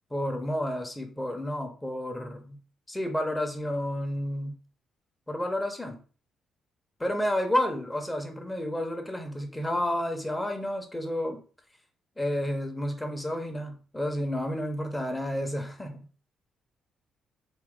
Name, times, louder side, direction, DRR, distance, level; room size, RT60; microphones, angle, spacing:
voice 1, 0.1-2.6 2.9-4.6 5.3-6.0 7.0-11.4 12.2-16.1, left 1 dB, 10° left, 4 dB, 1.1 m, -30 dB
4.1 x 2.8 x 3.9 m, 0.38 s
cardioid pair, 90°, 0 cm